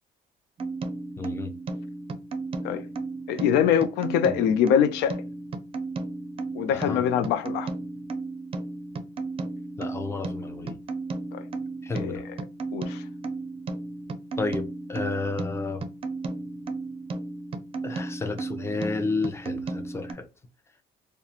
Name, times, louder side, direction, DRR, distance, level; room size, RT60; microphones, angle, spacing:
sound 1, 0.6-20.1, right 3 dB, 35° right, 0.5 m, -34 dB
voice 1, 1.2-1.5 4.3-4.4 6.7-7.0 9.8-10.8 11.8-12.2 14.4-15.8 17.8-20.2, left 3 dB, 15° left, 0.6 m, -31 dB
voice 2, 3.3-5.2 6.5-7.7 11.3-11.4 11.9-12.2 12.7-13.0, left 9 dB, 90° left, 0.4 m, -24 dB
2.3 x 2.1 x 2.8 m
cardioid pair, 110°, 17 cm